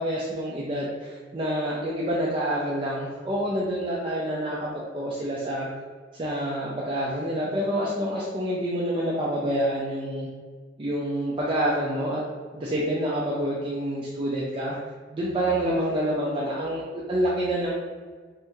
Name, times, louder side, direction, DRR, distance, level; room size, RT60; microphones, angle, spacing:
voice 1, 0.0-5.7 6.2-10.3 10.8-12.2 12.5-14.8 15.1-17.7, equal, 30° right, -6 dB, 0.4 m, -27 dB
2.8 x 2.6 x 3.5 m, 1.5 s
head